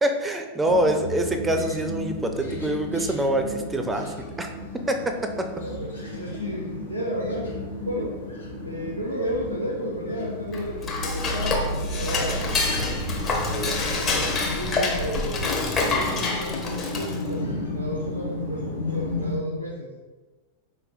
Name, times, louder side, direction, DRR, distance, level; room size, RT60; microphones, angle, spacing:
voice 1, 0.0-4.5 4.9-5.5, right 1 dB, 10° right, 5 dB, 0.4 m, -25 dB
sound 1, 0.6-19.4, left 2 dB, 80° left, 0.9 m, -34 dB
voice 2, 5.6-7.6 7.8-8.2 8.6-12.5 14.0-19.9, equal, 85° right, -3 dB, 0.5 m, -32 dB
Dishes pots and pans / Cutlery silverware, 10.5-17.3, left 2 dB, 30° left, 0.7 m, -26 dB
4.4 x 3.2 x 2.5 m, 1.2 s
figure-of-eight pair, 90°, 0 cm